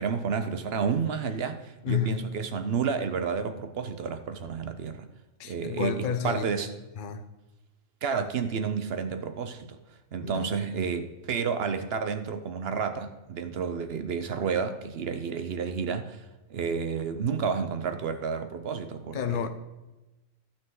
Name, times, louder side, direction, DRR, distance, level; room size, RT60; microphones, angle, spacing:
voice 1, 0.0-5.1 5.4-6.7 8.0-9.8 10.1-16.2 16.5-19.5, right 6 dB, 55° right, 0.9 m, -30 dB
voice 2, 1.8-2.4 5.4-6.6 7.0-7.2 10.2-10.5 19.1-19.5, left 7 dB, 45° left, 0.8 m, -31 dB
15.0 x 5.9 x 3.8 m
omnidirectional pair, 1.4 m